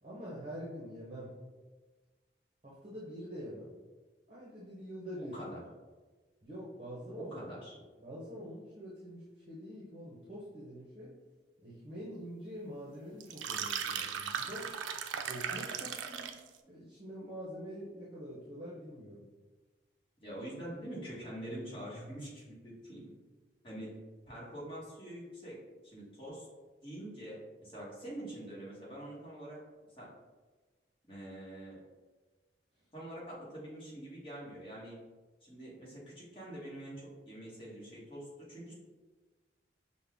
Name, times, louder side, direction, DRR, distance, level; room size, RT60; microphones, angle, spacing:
voice 1, 0.0-1.3 2.6-3.7 4.3-5.4 6.4-11.1 11.6-14.7 15.3-16.4 16.6-19.3, equal, 30° right, -7 dB, 0.8 m, -45 dB
voice 2, 5.2-5.6 7.1-7.8 20.2-23.0 23.6-23.9 24.2-25.6 25.8-26.5 26.8-29.6 30.0-30.1 31.1-31.8 32.9-35.0 35.4-38.7, right 1 dB, 30° left, -7 dB, 1.2 m, -45 dB
sound 1, 13.2-16.5, right 7 dB, 85° right, 0.3 m, -37 dB
5.4 x 2.1 x 3.5 m, 1.3 s
head